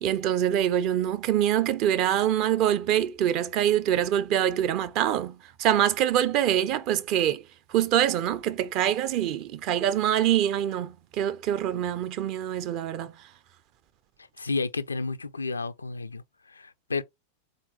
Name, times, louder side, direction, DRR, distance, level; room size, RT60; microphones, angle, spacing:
voice 1, 0.0-7.4 7.7-13.1, right 11 dB, 40° right, 0.5 m, -25 dB
voice 2, 14.4-16.2 16.5-17.0, left 3 dB, 75° left, 0.3 m, -31 dB
4.0 x 3.8 x 2.8 m
figure-of-eight pair, 90°, 0 cm